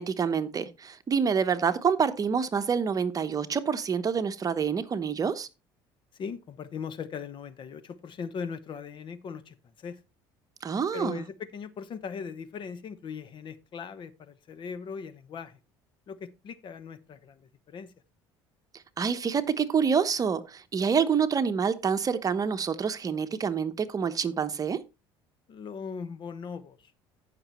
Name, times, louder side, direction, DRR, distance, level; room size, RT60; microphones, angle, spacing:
voice 1, 0.0-5.5 10.6-11.2 19.0-24.8, right 6 dB, 35° right, 1.0 m, -27 dB
voice 2, 6.1-10.0 10.9-15.6 16.1-17.9 25.5-26.9, left 6 dB, 45° left, 1.1 m, -39 dB
15.0 x 6.0 x 3.0 m
supercardioid pair, 90°, 11 cm